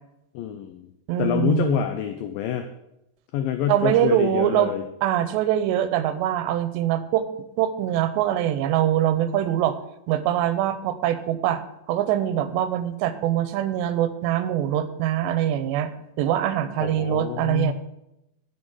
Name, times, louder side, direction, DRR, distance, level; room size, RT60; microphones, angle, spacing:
voice 1, 0.3-0.9 1.2-2.7 3.3-4.8 16.8-17.7, left 10 dB, 80° left, 7 dB, 2.1 m, -26 dB
voice 2, 1.1-1.9 3.7-4.7 5.0-7.3 7.6-9.8 10.1-11.6 11.9-15.9 16.2-17.7, right 11 dB, 90° right, 12 dB, 3.1 m, -23 dB
11.0 x 6.3 x 8.9 m, 0.86 s
omnidirectional pair, 4.9 m